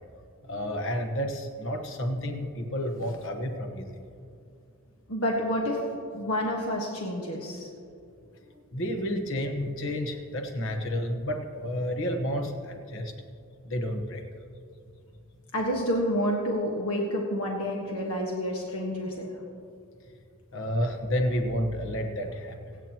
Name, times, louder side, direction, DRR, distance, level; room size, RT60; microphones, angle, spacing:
voice 1, 0.5-3.8 8.7-13.1 13.6-14.2 20.5-22.6, equal, 60° left, 4 dB, 1.2 m, -30 dB
voice 2, 5.1-5.8 6.1-7.7 15.5-19.3, equal, 90° left, -1 dB, 1.5 m, -29 dB
25.5 x 9.0 x 3.0 m, 2.4 s
head